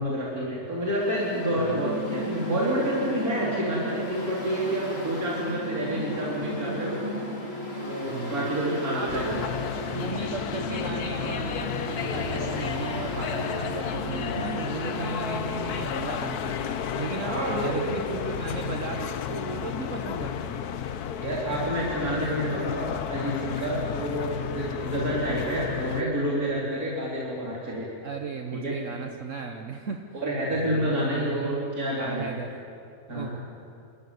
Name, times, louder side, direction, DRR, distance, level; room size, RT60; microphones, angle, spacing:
voice 1, 0.0-7.0 7.8-9.5 17.2-18.2 21.2-27.9 28.6-28.7 30.1-32.4 33.1-33.4, equal, 75° right, -6 dB, 4.0 m, -28 dB
Mechanical fan, 0.8-15.6, equal, 40° left, 3.8 m, -35 dB
voice 2, 8.0-9.5 9.9-17.3 17.6-20.6 28.0-30.2 30.5-32.6 33.1-33.4, right 5 dB, 60° right, 4 dB, 1.4 m, -36 dB
sound 1, 9.1-26.0, left 8 dB, 90° left, 1.4 m, -32 dB
28.0 x 14.5 x 9.6 m, 2.7 s
omnidirectional pair, 1.6 m